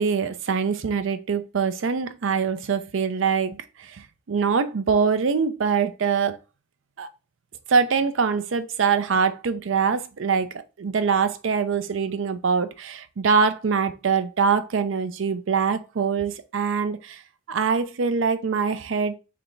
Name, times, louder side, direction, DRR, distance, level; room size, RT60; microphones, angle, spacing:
voice 1, 0.0-6.4 7.0-7.1 7.7-17.2 17.5-19.2, right 5 dB, 80° right, 0.5 m, -24 dB
3.4 x 2.9 x 3.8 m
head